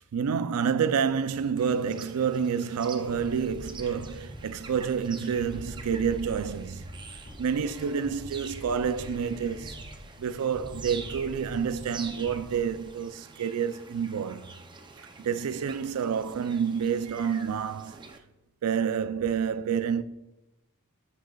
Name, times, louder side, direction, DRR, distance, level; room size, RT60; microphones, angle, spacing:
voice 1, 0.0-9.8 10.2-14.5 15.2-18.0 18.6-20.0, right 7 dB, 75° right, 0.4 m, -29 dB
sound 1, 1.6-18.2, right 4 dB, 20° right, 0.5 m, -47 dB
sound 2, 3.0-13.0, equal, 60° left, 1.7 m, -44 dB
9.9 x 6.3 x 2.3 m
head